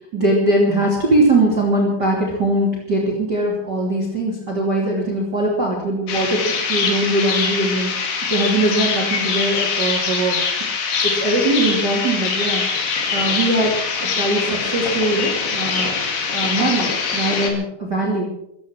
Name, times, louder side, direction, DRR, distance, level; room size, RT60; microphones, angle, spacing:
voice 1, 0.1-12.7 13.1-15.9 16.3-18.3, right 1 dB, 30° right, -2 dB, 3.1 m, -21 dB
sound 1, 6.1-17.5, left 5 dB, 80° left, 4.4 m, -23 dB
16.0 x 13.5 x 6.1 m, 0.81 s
omnidirectional pair, 4.6 m